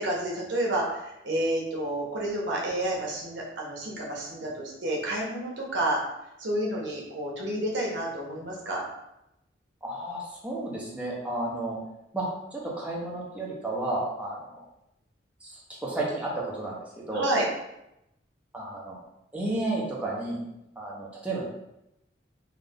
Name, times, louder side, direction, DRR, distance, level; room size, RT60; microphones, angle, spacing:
voice 1, 0.0-6.0 6.4-8.8 17.1-17.5, right 1 dB, 75° right, -3 dB, 1.1 m, -30 dB
voice 2, 9.8-11.8 12.1-12.3 12.5-14.6 15.4-15.5 15.8-17.3 18.5-19.0 19.3-20.4 20.8-21.5, right 2 dB, 5° right, -5 dB, 0.9 m, -32 dB
3.5 x 2.7 x 3.6 m, 0.86 s
head